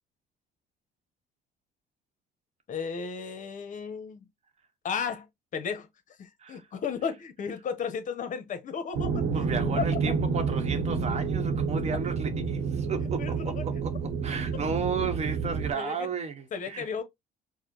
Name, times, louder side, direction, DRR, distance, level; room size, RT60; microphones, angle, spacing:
voice 1, 2.7-4.2 4.8-5.9 6.2-9.1 9.8-9.9 13.2-13.6 15.7-16.1 16.5-17.0, left 6 dB, 50° left, 0.8 m, -34 dB
sound 1, 8.9-15.7, right 5 dB, 75° right, 0.9 m, -29 dB
voice 2, 9.3-16.9, right 5 dB, 40° right, 0.9 m, -34 dB
4.8 x 2.1 x 2.9 m
cardioid pair, 110°, 17 cm